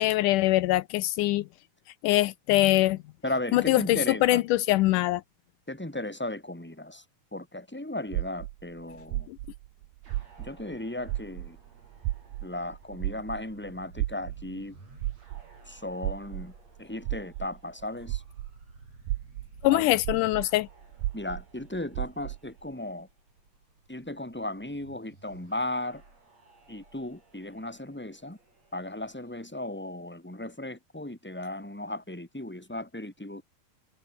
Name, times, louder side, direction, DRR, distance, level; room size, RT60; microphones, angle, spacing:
voice 1, 0.0-1.4 2.0-3.0 3.5-5.2 19.6-20.7, left 17 dB, 80° left, 2.2 m, -23 dB
voice 2, 3.2-4.4 5.7-7.0 7.3-9.3 10.4-11.6 12.4-14.7 15.7-16.5 16.8-18.2 19.7-19.9 21.1-23.1 23.9-26.0 26.7-28.4 28.7-33.4, left 1 dB, 5° left, 3.9 m, -36 dB
sound 1, 8.1-10.8 11.0-18.6 19.0-22.5, right 16 dB, 75° right, 2.2 m, -34 dB
sound 2, 10.0-29.5, right 3 dB, 55° right, 8.6 m, -55 dB
omnidirectional pair, 3.7 m